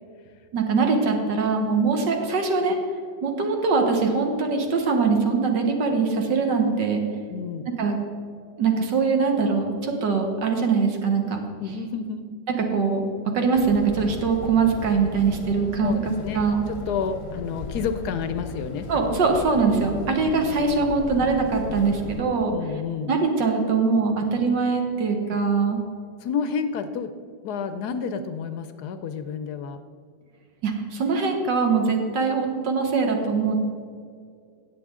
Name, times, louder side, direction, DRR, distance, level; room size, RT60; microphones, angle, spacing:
voice 1, 0.5-2.8 3.2-7.0 7.8-8.0 8.6-11.4 12.6-13.1 13.3-16.0 16.3-16.6 18.9-22.5 23.1-25.8 30.6-33.6, right 4 dB, 70° right, 3 dB, 1.8 m, -22 dB
voice 2, 7.3-7.7 11.6-12.3 15.8-18.9 22.5-23.1 26.2-27.1 27.4-29.8, left 6 dB, 70° left, 10 dB, 1.1 m, -30 dB
sound 1, 13.5-22.2, left 3 dB, 45° left, 0.9 m, -37 dB
17.5 x 7.5 x 3.7 m, 2.2 s
omnidirectional pair, 2.0 m